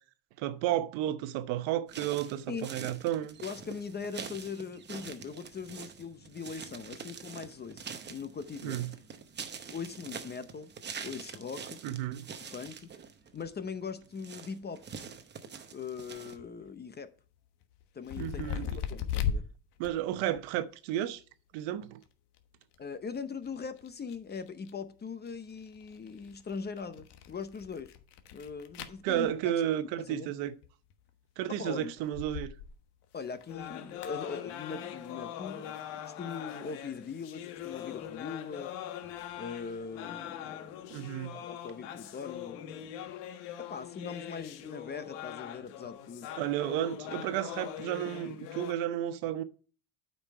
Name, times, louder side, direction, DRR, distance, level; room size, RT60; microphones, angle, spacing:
voice 1, 0.4-3.4 8.6-8.9 11.8-12.3 18.2-18.8 19.8-21.2 21.5-22.0 29.0-30.5 31.4-32.5 40.9-41.4 46.4-49.4, right 12 dB, 75° right, 0.9 m, -32 dB
sound 1, 1.9-16.4, right 6 dB, 25° right, 0.8 m, -45 dB
voice 2, 3.4-8.8 9.7-10.7 11.0-11.8 12.4-12.9 13.3-14.8 15.7-17.1 17.9-19.4 20.3-20.4 22.8-28.0 28.3-29.5 30.0-30.3 31.6-31.9 33.1-38.7 39.4-40.7 41.3-42.9 43.7-46.3, left 5 dB, 20° left, 0.7 m, -41 dB
sound 2, 16.4-16.7 17.6-19.4 19.8-20.5 22.0-22.1 22.3-22.8 23.1-24.7 25.3-29.3 30.6-31.1 31.8-32.8 33.0-34.1, left 8 dB, 60° left, 1.3 m, -38 dB
sound 3, 33.5-48.7, left 10 dB, 85° left, 1.3 m, -42 dB
8.8 x 5.4 x 4.4 m
cardioid pair, 130°, 46 cm